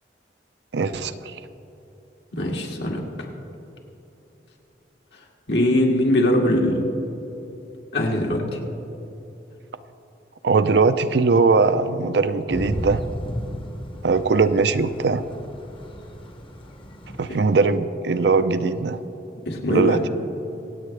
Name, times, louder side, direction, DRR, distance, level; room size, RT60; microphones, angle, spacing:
voice 1, 0.7-1.4 10.4-13.0 14.0-15.2 17.2-19.0 19.7-20.0, right 4 dB, 70° right, 11 dB, 0.5 m, -20 dB
voice 2, 2.3-3.0 5.5-6.8 7.9-8.6 19.5-20.0, left 1 dB, 75° left, 0 dB, 1.9 m, -21 dB
Thunder / Rain, 12.5-17.4, equal, 30° left, 0.9 m, -35 dB
25.5 x 8.5 x 3.3 m, 3.0 s
head